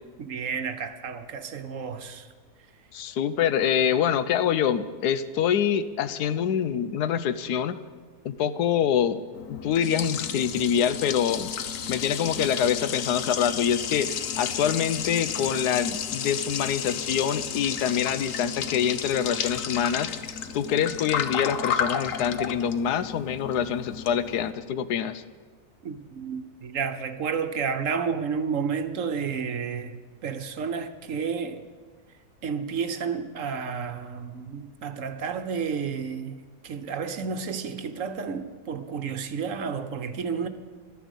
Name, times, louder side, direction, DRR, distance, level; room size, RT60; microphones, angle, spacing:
voice 1, 0.2-2.3 25.8-31.7 32.4-40.5, right 6 dB, 60° right, 1.1 m, -31 dB
voice 2, 2.9-7.8 8.2-9.2 9.5-11.5 11.9-14.1 14.4-20.1 20.5-25.2, left 8 dB, 85° left, 1.3 m, -25 dB
Liquid, 9.3-24.5, left 7 dB, 60° left, 1.1 m, -32 dB
13.0 x 12.5 x 8.1 m
omnidirectional pair, 1.7 m